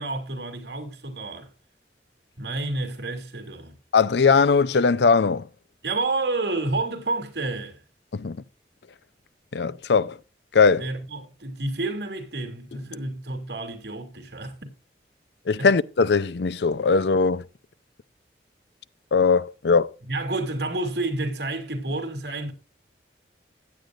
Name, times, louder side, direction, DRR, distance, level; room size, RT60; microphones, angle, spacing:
voice 1, 0.0-1.5 2.4-3.7 5.8-7.8 10.8-14.7 15.6-15.7 20.1-22.5, right 2 dB, 70° right, 2.7 m, -30 dB
voice 2, 3.9-5.5 8.1-8.4 9.5-10.2 10.5-10.9 15.5-17.5 19.1-19.9, left 5 dB, 75° left, 0.5 m, -20 dB
15.5 x 9.7 x 2.5 m
head